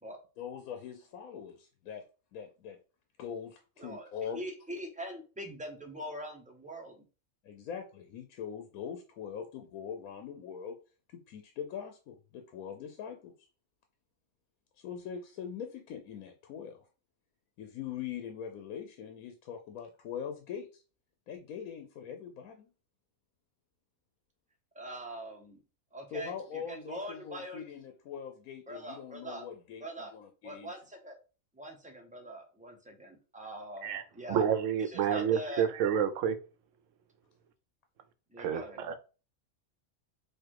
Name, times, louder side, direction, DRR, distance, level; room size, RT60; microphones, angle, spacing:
voice 1, 0.4-2.0 2.3-2.8 3.2-4.4 7.4-10.8 11.1-13.3 14.8-16.8 17.6-20.8 21.3-22.7 26.1-30.7, left 8 dB, 80° left, 1.1 m, -42 dB
voice 2, 3.8-7.1 24.7-25.6 25.9-27.7 28.7-29.5 29.8-30.1 30.4-31.2 31.5-34.5 34.8-35.7 38.3-38.8, right 1 dB, 10° right, 0.6 m, -43 dB
voice 3, 34.3-36.4 38.4-38.9, right 8 dB, 65° right, 0.9 m, -29 dB
4.3 x 2.4 x 4.6 m
omnidirectional pair, 1.5 m